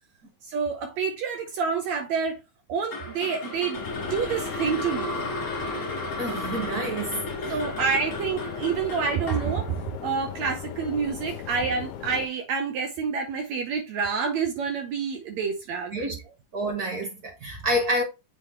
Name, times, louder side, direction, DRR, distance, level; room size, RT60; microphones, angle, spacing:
voice 1, 0.4-2.4 2.7-5.2 7.5-15.9, right 6 dB, 70° right, 2.0 m, -28 dB
sound 1, 2.9-11.1, left 1 dB, 30° left, 1.6 m, -34 dB
sound 2, 3.7-12.3, left 10 dB, 80° left, 2.0 m, -38 dB
voice 2, 6.2-7.5 15.9-16.2 16.5-18.0, equal, 55° right, 1.0 m, -28 dB
7.6 x 4.1 x 3.1 m
omnidirectional pair, 3.6 m